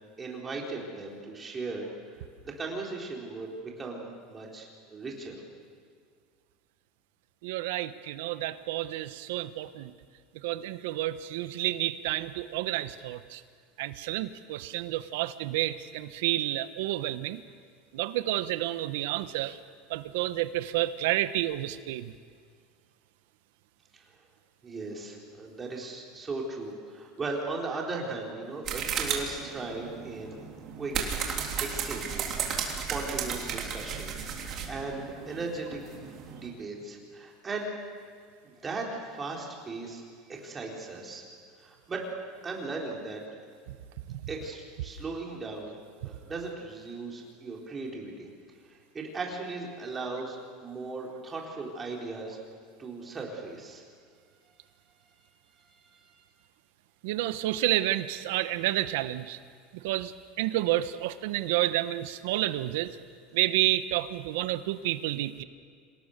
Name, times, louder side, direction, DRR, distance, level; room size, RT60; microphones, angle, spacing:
voice 1, 0.2-1.9 2.1-5.4 23.9-24.0 24.6-30.4 30.8-30.9 31.4-32.4 32.7-34.2 34.4-35.8 36.3-37.7 38.4-40.0 40.3-41.2 41.6-42.0 42.4-43.2 44.3-45.8 46.0-48.3 48.7-52.4 52.8-53.8 55.7-56.2, right 3 dB, 20° right, -1 dB, 4.2 m, -37 dB
voice 2, 7.4-9.9 10.3-13.4 13.8-17.4 17.9-19.6 19.9-22.1 43.7-43.8 44.1-44.2 57.0-59.4 59.7-63.0 63.3-65.4, right 15 dB, 80° right, 13 dB, 1.0 m, -30 dB
sound 1, 28.6-36.5, right 7 dB, 40° right, 3.4 m, -34 dB
26.5 x 18.0 x 6.8 m, 2.1 s
supercardioid pair, 145°, 0 cm